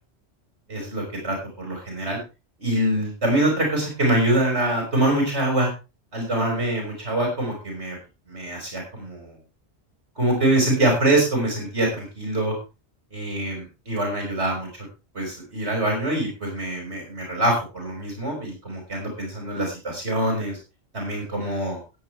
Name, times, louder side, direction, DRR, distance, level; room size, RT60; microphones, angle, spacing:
voice 1, 0.7-2.2 2.6-5.7 6.1-8.0 8.3-9.4 10.2-12.5 13.1-14.7 15.1-20.6 20.9-21.8, right 1 dB, 75° right, 0 dB, 5.8 m, -24 dB
16.5 x 9.5 x 3.3 m, 0.29 s
omnidirectional pair, 1.2 m